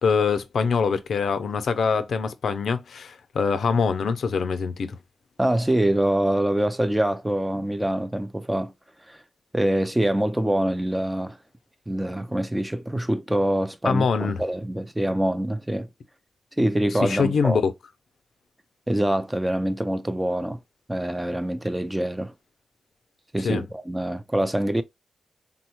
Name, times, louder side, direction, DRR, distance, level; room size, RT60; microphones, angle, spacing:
voice 1, 0.0-5.0 13.8-14.4 17.0-17.7 23.4-23.6, left 5 dB, 80° left, 0.4 m, -24 dB
voice 2, 5.4-8.7 9.1-9.2 9.5-11.4 11.9-15.9 16.6-17.6 18.9-20.6 20.9-22.3 23.3-24.8, right 1 dB, 10° right, 0.4 m, -25 dB
3.7 x 2.1 x 2.9 m
wide cardioid pair, 115°, 0 cm